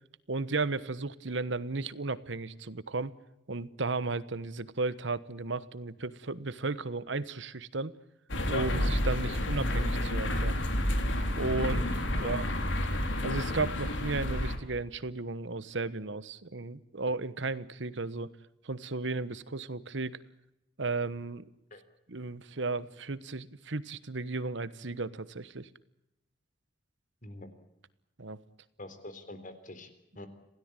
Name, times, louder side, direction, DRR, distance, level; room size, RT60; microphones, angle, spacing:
voice 1, 0.3-3.1 3.5-7.9 8.5-10.6 11.4-12.4 13.2-18.3 18.6-20.2 20.8-21.4 22.1-25.7 28.2-28.4, right 3 dB, 70° right, 16 dB, 1.2 m, -34 dB
sound 1, 8.3-14.6, left 1 dB, 75° left, 3.5 m, -30 dB
voice 2, 28.8-29.9 30.2-30.3, left 2 dB, 45° left, 10 dB, 3.8 m, -45 dB
27.0 x 17.0 x 9.0 m, 0.89 s
head